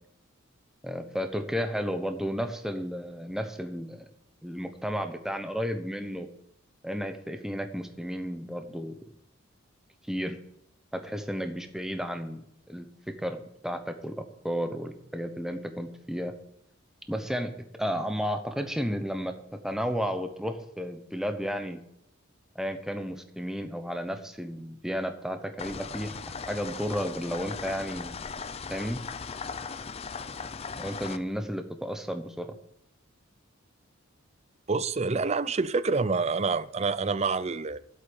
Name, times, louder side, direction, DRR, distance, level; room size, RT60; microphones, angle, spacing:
voice 1, 0.8-4.1 4.4-6.3 6.8-8.9 10.1-10.4 10.9-12.4 12.7-16.3 17.1-21.8 22.5-26.2 26.5-28.1 28.7-29.0 30.7-32.5, equal, ahead, 0.9 m, -33 dB
sound 1, 25.6-31.2, left 5 dB, 30° left, 0.5 m, -38 dB
voice 2, 34.7-37.8, right 4 dB, 30° right, 0.5 m, -27 dB
8.1 x 8.1 x 8.9 m
head